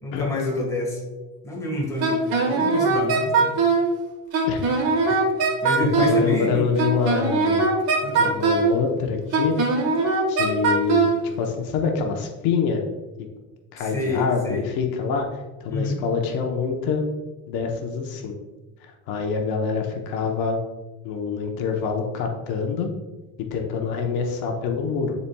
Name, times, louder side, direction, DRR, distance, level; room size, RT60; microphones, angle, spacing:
voice 1, 0.0-1.0 1.4-3.6 5.1-5.3 5.6-6.7 8.0-8.4 13.8-14.6 15.7-16.0, left 1 dB, 10° left, -3 dB, 1.4 m, -28 dB
Wind instrument woodwind instrument, 2.0-3.9 4.3-6.2 6.8-8.7 9.3-11.2, right 4 dB, 70° right, 1.6 m, -21 dB
voice 2, 5.9-7.7 8.0-9.6 10.3-11.1 11.4-12.8 13.7-17.0 17.5-18.3 18.8-20.6 21.0-22.9 23.4-25.1, left 5 dB, 75° left, 2 dB, 0.9 m, -26 dB
10.0 x 4.2 x 2.2 m, 1.2 s
cardioid pair, 165°, 37 cm